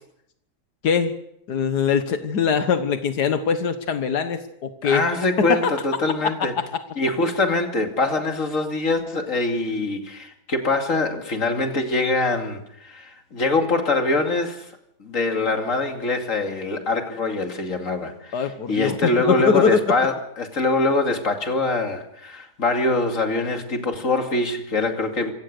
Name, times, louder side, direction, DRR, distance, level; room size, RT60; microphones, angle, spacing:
voice 1, 0.8-1.1 1.5-5.0 5.4-5.6 18.3-19.8, left 6 dB, 85° left, 8 dB, 1.8 m, -22 dB
voice 2, 4.8-6.5 7.0-14.7 15.0-25.3, left 2 dB, 55° left, 4 dB, 2.8 m, -24 dB
26.5 x 15.5 x 6.7 m, 0.74 s
omnidirectional pair, 1.7 m